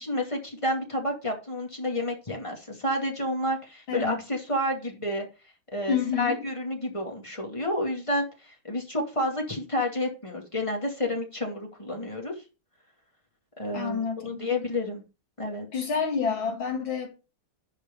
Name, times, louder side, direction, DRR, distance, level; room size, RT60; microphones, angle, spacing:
voice 1, 0.0-5.3 5.7-12.3 13.6-15.0 15.4-15.7, left 1 dB, 15° left, 2.2 m, -30 dB
voice 2, 3.9-4.2 5.9-6.4 13.7-14.5 15.7-17.1, left 6 dB, 70° left, 2.9 m, -28 dB
11.5 x 4.9 x 5.3 m
omnidirectional pair, 2.3 m